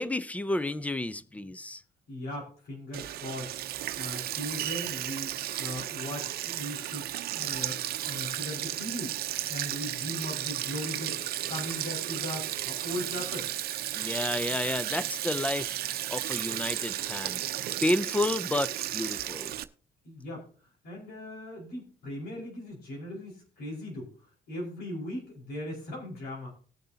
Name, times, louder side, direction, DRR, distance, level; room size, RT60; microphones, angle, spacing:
voice 1, 0.0-1.8 14.0-15.8 16.1-17.4 17.8-19.6, left 1 dB, 10° left, 0.6 m, -31 dB
voice 2, 2.1-3.5 4.0-5.3 5.6-7.1 7.3-7.8 8.1-9.2 9.5-11.2 11.5-13.5 20.0-20.4 20.8-24.1 24.5-26.5, left 1 dB, 65° left, 5.0 m, -38 dB
Sink (filling or washing), 2.9-19.6, right 13 dB, 65° right, 0.7 m, -34 dB
19.0 x 6.6 x 2.8 m
cardioid pair, 110°, 17 cm